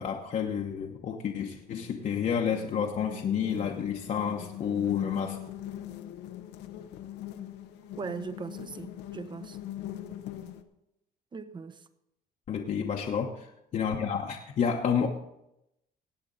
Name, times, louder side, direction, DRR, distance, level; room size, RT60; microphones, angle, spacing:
voice 1, 0.0-5.4 12.5-15.1, left 7 dB, 50° left, 1 dB, 1.0 m, -30 dB
sound 1, 1.5-10.6, left 12 dB, 90° left, 0.8 m, -42 dB
voice 2, 8.0-9.6 11.3-11.8, right 4 dB, 25° right, 12 dB, 0.8 m, -39 dB
17.5 x 8.4 x 4.0 m, 0.85 s
cardioid pair, 110°, 17 cm